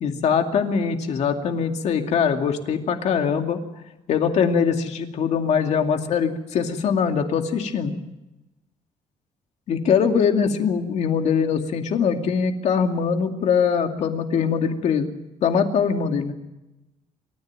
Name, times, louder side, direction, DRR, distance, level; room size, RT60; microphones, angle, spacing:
voice 1, 0.0-3.6 4.1-8.0 9.7-15.1 15.4-16.3, left 6 dB, 60° left, 4 dB, 2.5 m, -22 dB
27.5 x 14.0 x 8.9 m, 0.96 s
cardioid pair, 165°, 13 cm